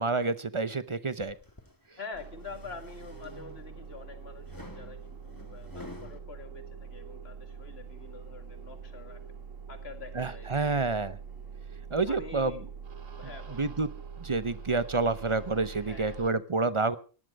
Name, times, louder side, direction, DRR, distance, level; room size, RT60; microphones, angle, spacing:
voice 1, 0.0-1.3 10.2-11.2 11.9-12.5 13.6-13.9 14.2-17.0, right 3 dB, 30° right, 14 dB, 0.7 m, -28 dB
sound 1, 1.2-1.7 2.3-3.9 4.5-6.2, left 2 dB, 15° left, 2.0 m, -48 dB
voice 2, 2.0-9.2 9.7-11.1 12.1-12.7 13.2-13.7 15.8-16.2, left 4 dB, 50° left, 7 dB, 2.4 m, -46 dB
sound 2, 2.1-16.3, right 6 dB, 85° right, 2.2 m, -44 dB
18.5 x 11.5 x 5.2 m, 0.38 s
omnidirectional pair, 1.3 m